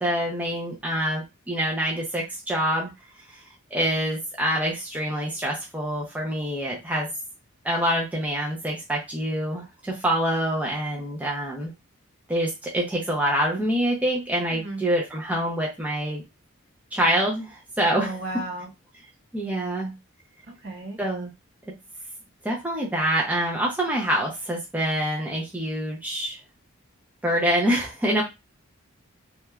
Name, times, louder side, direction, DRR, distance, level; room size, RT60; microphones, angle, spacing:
voice 1, 0.0-2.9 3.3-3.4 3.7-7.1 7.6-11.7 12.3-16.2 16.9-18.2 19.3-19.9 21.0-21.3 22.4-26.4 27.2-28.2, equal, 5° right, -2 dB, 0.4 m, -26 dB
voice 2, 14.5-14.8 17.9-18.7 20.5-21.0 28.1-28.2, right 2 dB, 50° right, 2 dB, 0.7 m, -34 dB
3.0 x 2.2 x 2.3 m, 0.24 s
head